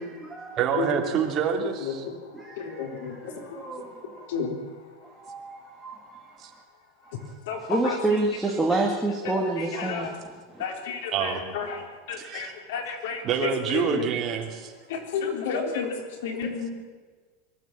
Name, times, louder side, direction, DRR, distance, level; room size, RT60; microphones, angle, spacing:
voice 1, 0.0-0.6 2.3-4.3 5.0-6.6 7.0-7.3 7.7-10.6 12.8-12.9, right 2 dB, 5° right, -2 dB, 2.0 m, -30 dB
voice 2, 0.6-2.1 6.4-6.5 10.7-10.8 11.1-11.4 12.2-12.5 13.2-14.7, right 7 dB, 30° right, 1 dB, 2.7 m, -27 dB
voice 3, 2.8-3.1 4.3-4.5 7.5-7.9 9.8-10.1 10.6-11.8 12.1-13.2 13.7-14.0 14.9-15.9 16.2-16.7, left 6 dB, 80° left, 3 dB, 4.1 m, -31 dB
23.0 x 12.5 x 8.9 m, 1.4 s
supercardioid pair, 165°, 0 cm